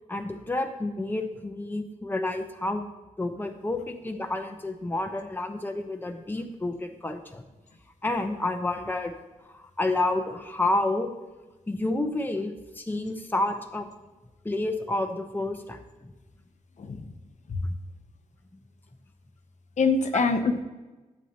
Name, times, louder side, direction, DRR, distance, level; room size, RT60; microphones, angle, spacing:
voice 1, 0.1-2.9 3.2-7.4 8.0-9.1 9.5-11.1 11.7-13.9 14.4-15.8 17.6-17.7, left 2 dB, 15° left, 4 dB, 0.9 m, -29 dB
voice 2, 16.8-17.1 17.5-17.7 19.8-20.6, left 4 dB, 60° left, 6 dB, 0.8 m, -24 dB
11.5 x 7.9 x 2.9 m, 1.2 s
wide cardioid pair, 95°, 14 cm